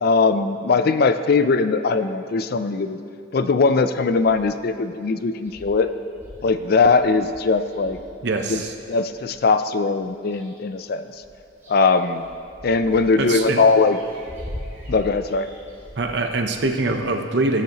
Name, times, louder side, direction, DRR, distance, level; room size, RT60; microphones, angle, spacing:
voice 1, 0.0-3.0 3.3-6.0 6.4-8.0 8.5-8.6 8.9-11.0 11.7-12.3 12.6-14.0 14.9-15.5, left 4 dB, 50° left, 11 dB, 0.4 m, -20 dB
sound 1, 4.2-4.7 5.1-5.2 5.4-9.4 10.0-10.8 11.1-17.0, equal, 10° right, 2.0 m, -42 dB
voice 2, 8.2-8.7 13.2-13.6 16.0-17.6, right 2 dB, 60° right, 5 dB, 0.7 m, -23 dB
17.5 x 6.6 x 3.0 m, 2.6 s
head